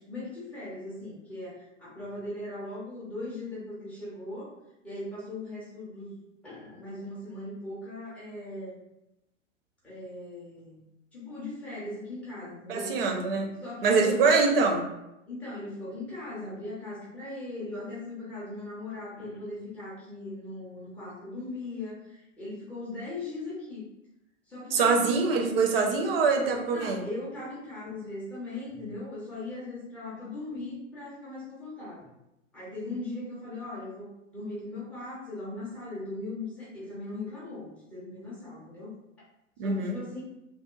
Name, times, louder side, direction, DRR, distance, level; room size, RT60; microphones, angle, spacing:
voice 1, 0.1-4.5 4.8-6.2 6.4-8.8 9.8-10.8 11.1-12.9 13.6-14.2 15.3-23.9 24.5-25.4 26.5-32.1 32.5-38.9 39.6-40.2, left 2 dB, 5° left, -10 dB, 0.3 m, -39 dB
voice 2, 12.7-13.5 13.8-14.8 24.7-27.0 39.6-40.0, right 4 dB, 45° right, 3 dB, 0.5 m, -24 dB
2.8 x 2.0 x 2.3 m, 0.88 s
figure-of-eight pair, 105°, 39 cm